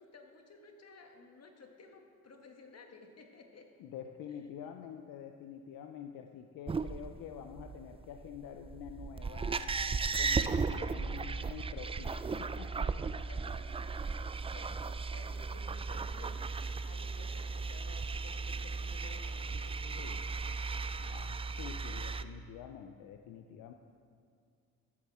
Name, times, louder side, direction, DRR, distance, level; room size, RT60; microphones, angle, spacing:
voice 1, 0.0-3.7 4.4-4.5 13.3-14.3 14.5-16.4 16.8-20.0, left 3 dB, 50° left, 3 dB, 1.5 m, -55 dB
voice 2, 3.8-13.2 19.5-19.6 20.0-20.3 21.0-23.7, left 8 dB, 80° left, 5 dB, 0.6 m, -47 dB
sound 1, 6.7-22.2, right 4 dB, 20° right, 0.3 m, -36 dB
13.0 x 7.3 x 4.2 m, 2.3 s
supercardioid pair, 60°, 33 cm